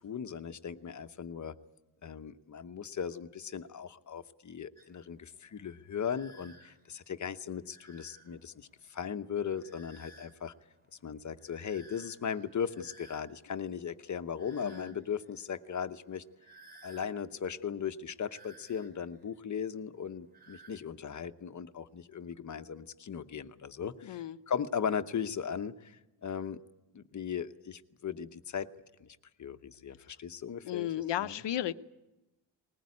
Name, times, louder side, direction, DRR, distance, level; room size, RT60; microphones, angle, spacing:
voice 1, 0.0-1.5 2.0-10.5 11.0-16.2 16.8-26.6 26.9-28.7 29.0-31.4, left 7 dB, 40° left, 11 dB, 0.9 m, -38 dB
sound 1, 4.8-20.8, right 1 dB, 20° right, 2.7 m, -59 dB
voice 2, 14.6-14.9 24.0-24.4 30.6-31.7, left 12 dB, 70° left, 13 dB, 0.8 m, -34 dB
20.5 x 20.0 x 9.6 m, 1.0 s
wide cardioid pair, 155°, 45 cm